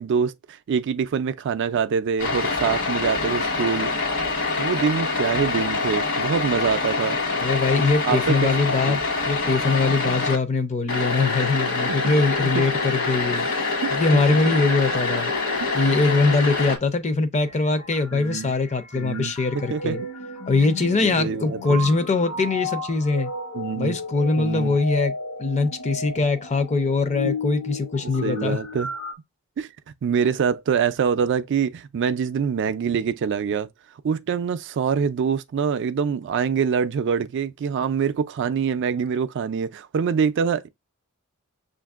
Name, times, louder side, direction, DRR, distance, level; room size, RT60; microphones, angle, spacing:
voice 1, 0.0-3.9 4.6-7.2 8.0-8.5 8.9-9.0 10.1-10.2 11.9-12.2 12.4-12.6 13.8-14.5 15.6-16.0 18.1-18.5 18.9-19.3 19.7-20.0 21.0-21.8 23.5-24.0 24.4-24.8 28.0-28.9 29.6-29.7 30.0-33.7 34.0-40.7, right 6 dB, 55° right, 0.3 m, -25 dB
sound 1, 2.2-10.4 10.9-16.8, left 3 dB, 60° left, 1.3 m, -25 dB
voice 2, 7.4-9.0 9.2-13.5 13.9-15.3 15.7-20.0 20.5-23.3 23.7-25.1 25.4-28.6, left 3 dB, 30° left, 0.5 m, -22 dB
sound 2, 17.4-29.1, left 2 dB, 80° left, 1.1 m, -34 dB
6.4 x 2.5 x 2.4 m
head